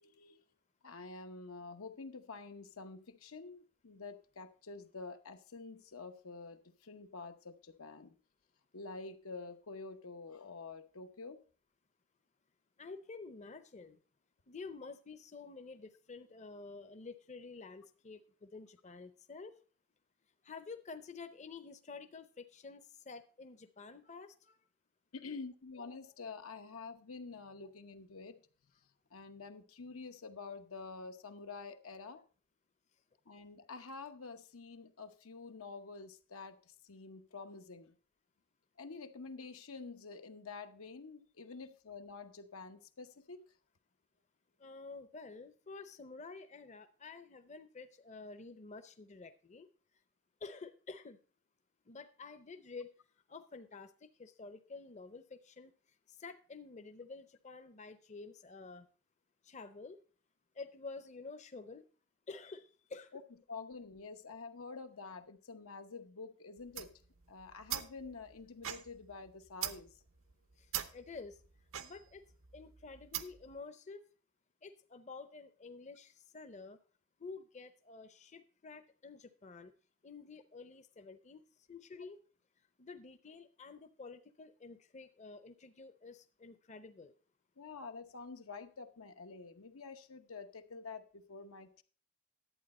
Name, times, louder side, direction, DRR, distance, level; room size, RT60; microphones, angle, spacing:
voice 1, 0.0-0.4 0.8-8.1 8.7-11.4 25.1-28.4 29.1-32.2 33.3-38.0 38.8-43.4 63.1-63.2 63.5-66.9 67.3-69.9 87.6-91.8, left 4 dB, 85° left, 7 dB, 0.9 m, -48 dB
voice 2, 12.8-14.0 14.5-19.5 20.4-24.7 44.6-49.7 50.4-51.2 51.9-52.9 53.3-55.7 56.1-58.9 59.4-60.0 60.5-61.9 62.3-63.1 70.6-71.4 71.8-72.2 72.5-74.0 74.6-76.8 77.2-79.7 80.0-81.4 81.7-82.2 82.8-87.1, left 4 dB, 35° left, 9 dB, 0.6 m, -50 dB
sound 1, 66.6-73.5, right 11 dB, 70° right, 0.8 m, -44 dB
11.0 x 8.6 x 4.2 m, 0.40 s
head